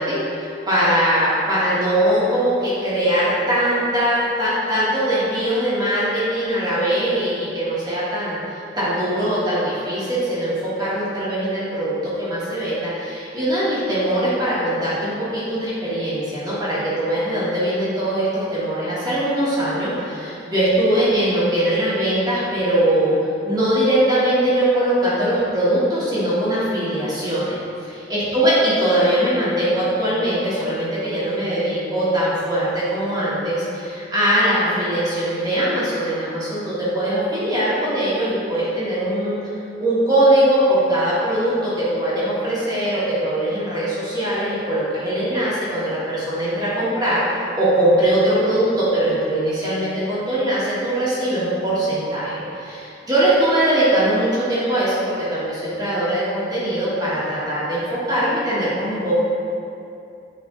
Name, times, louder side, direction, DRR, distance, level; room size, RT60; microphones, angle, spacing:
voice 1, 0.0-23.1 23.4-27.6 28.1-39.4 39.8-47.2 47.5-59.2, right 1 dB, 20° right, -10 dB, 1.4 m, -21 dB
9.0 x 3.3 x 3.7 m, 2.5 s
head